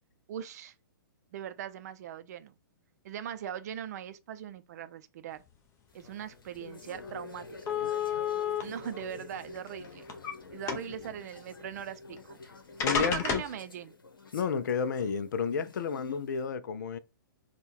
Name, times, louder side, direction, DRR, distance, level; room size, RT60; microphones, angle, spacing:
voice 1, 0.3-0.7 1.3-2.5 3.0-5.4 5.9-7.7 8.6-10.0 10.5-12.4 12.9-13.9, right 9 dB, 50° right, 0.5 m, -40 dB
sound 1, 5.9-16.4, left 3 dB, 80° left, 1.0 m, -48 dB
sound 2, 6.6-6.7 7.0-7.1 7.7-8.6 9.5-10.3 10.7-11.1 12.2-12.3 12.8-13.6, left 6 dB, 25° left, 0.7 m, -31 dB
voice 2, 12.8-13.4 14.3-17.0, left 6 dB, 60° left, 0.5 m, -31 dB
3.7 x 2.3 x 4.3 m
figure-of-eight pair, 120°, 11 cm